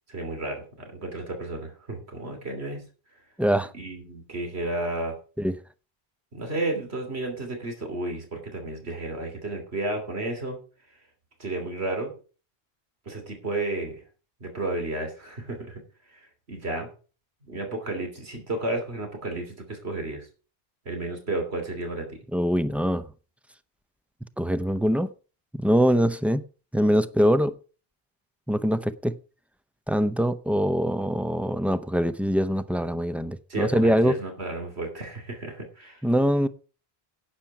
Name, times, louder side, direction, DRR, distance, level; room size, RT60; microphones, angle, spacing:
voice 1, 0.1-2.8 3.7-5.2 6.3-10.6 11.4-12.1 13.0-14.0 14.4-15.8 16.1-16.9 17.5-20.3 20.8-22.2 33.5-36.0, right 2 dB, 85° right, 3.3 m, -32 dB
voice 2, 3.4-3.7 5.4-5.6 22.3-23.0 24.4-25.1 25.5-26.4 26.7-27.6 28.5-29.2 29.9-34.2 36.0-36.5, equal, ahead, 0.3 m, -23 dB
11.5 x 8.9 x 4.8 m
omnidirectional pair, 1.1 m